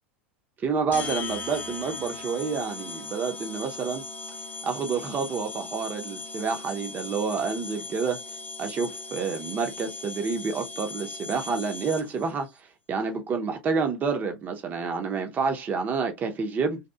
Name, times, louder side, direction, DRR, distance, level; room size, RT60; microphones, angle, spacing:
voice 1, 0.6-4.0 4.6-8.2 8.6-12.5 12.9-16.8, right 5 dB, 30° right, 0.6 m, -28 dB
sound 1, 0.9-12.3, left 3 dB, 30° left, 0.5 m, -38 dB
2.7 x 2.3 x 2.2 m
hypercardioid pair, 100°, 6 cm